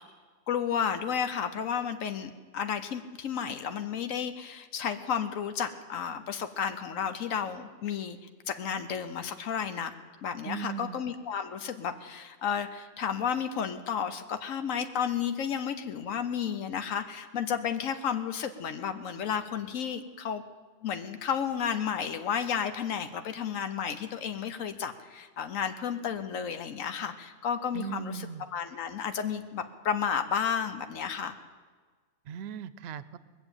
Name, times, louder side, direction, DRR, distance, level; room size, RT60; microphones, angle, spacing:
voice 1, 0.5-8.2 8.5-9.9 10.2-20.4 20.8-31.3, left 7 dB, 85° left, 9 dB, 1.2 m, -32 dB
voice 2, 10.4-11.0 27.7-28.5 32.3-33.2, right 7 dB, 60° right, 16 dB, 0.8 m, -38 dB
21.5 x 7.1 x 8.8 m, 1.5 s
omnidirectional pair, 1.3 m